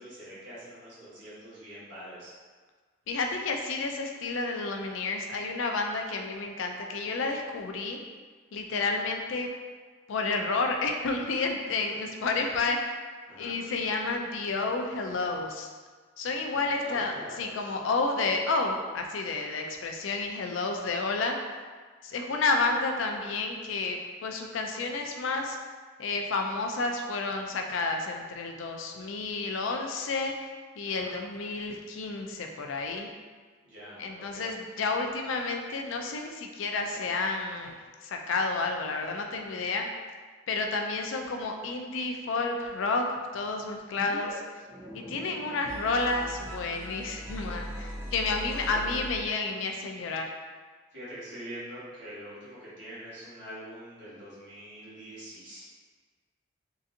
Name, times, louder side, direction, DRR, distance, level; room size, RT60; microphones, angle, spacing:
voice 1, 0.0-2.3 8.8-8.9 12.4-12.5 13.3-13.5 16.5-17.7 30.9-31.1 33.6-34.5 36.7-37.3 48.7-48.8 50.9-55.6, equal, 65° right, -10 dB, 1.4 m, -45 dB
voice 2, 3.1-8.0 8.5-9.5 10.1-13.0 13.4-15.7 16.2-21.4 22.0-25.6 26.0-30.3 30.8-33.1 34.0-37.8 38.0-39.9 40.5-43.1 43.3-44.4 44.9-50.3, left 3 dB, 80° left, 3 dB, 0.4 m, -30 dB
sound 1, 44.0-44.4 44.6-49.6, equal, 15° right, 0.5 m, -40 dB
3.8 x 2.5 x 2.6 m, 1.5 s
head